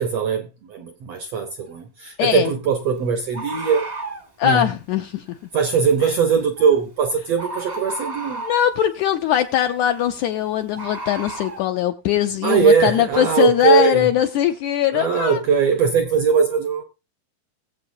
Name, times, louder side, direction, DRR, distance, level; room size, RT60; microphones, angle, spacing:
voice 1, 0.0-3.9 4.4-4.7 5.5-8.4 12.4-14.1 14.9-16.8, right 6 dB, 75° right, 1.5 m, -20 dB
Bird, 1.6-1.7 3.3-4.3 6.6-6.8 7.4-8.7 10.7-11.6, right 2 dB, 35° right, 0.6 m, -32 dB
voice 2, 2.2-2.5 4.4-5.5 8.4-15.4, left 11 dB, 80° left, 1.7 m, -21 dB
21.5 x 7.8 x 2.7 m
omnidirectional pair, 4.0 m